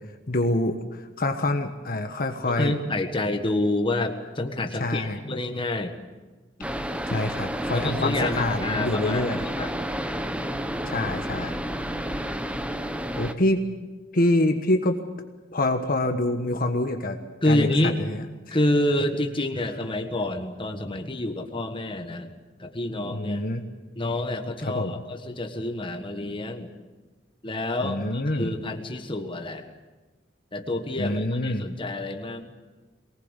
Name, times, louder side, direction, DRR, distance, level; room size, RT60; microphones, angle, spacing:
voice 1, 0.3-2.7 4.8-5.2 7.1-9.4 10.8-11.6 13.1-13.6 14.1-15.0 15.5-17.2 17.4-17.8 18.1-18.6 23.1-23.6 24.7-24.9 27.8-28.6 31.0-31.7, left 1 dB, 50° left, 6 dB, 1.3 m, -26 dB
voice 2, 2.5-5.9 7.7-9.7 17.4-18.0 18.5-22.3 22.6-23.4 24.0-26.7 27.4-29.6 30.5-32.5, left 1 dB, 25° left, 6 dB, 1.5 m, -28 dB
sound 1, 6.6-13.3, equal, 5° right, 1.0 m, -30 dB
23.0 x 19.0 x 8.2 m, 1.2 s
head